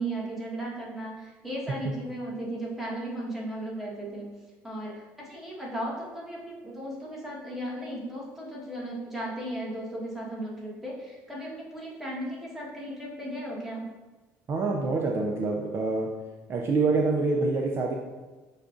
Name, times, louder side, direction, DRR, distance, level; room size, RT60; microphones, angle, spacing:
voice 1, 0.0-4.3 4.6-13.9, right 1 dB, 5° right, -5 dB, 1.3 m, -36 dB
voice 2, 14.5-16.1 16.5-17.9, right 3 dB, 40° right, 0 dB, 0.4 m, -26 dB
6.4 x 2.4 x 2.5 m, 1.2 s
supercardioid pair, 95°, 6 cm